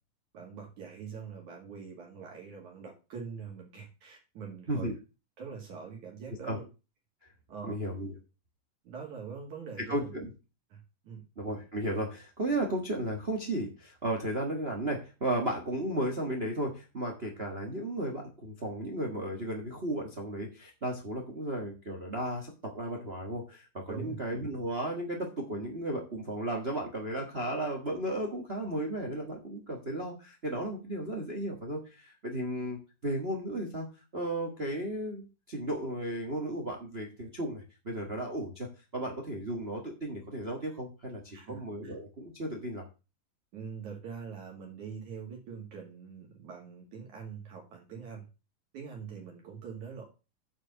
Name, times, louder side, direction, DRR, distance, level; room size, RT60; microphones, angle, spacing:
voice 1, 0.3-4.9 5.4-6.6 7.5-7.8 8.8-10.2 10.7-11.2 23.9-24.2 41.3-41.9 43.5-48.3 48.7-50.1, right 6 dB, 60° right, -1 dB, 3.3 m, -43 dB
voice 2, 7.7-8.1 9.9-10.3 11.4-33.9 34.1-42.8, right 1 dB, 80° right, 2 dB, 0.5 m, -34 dB
8.7 x 4.9 x 6.6 m, 0.31 s
omnidirectional pair, 4.0 m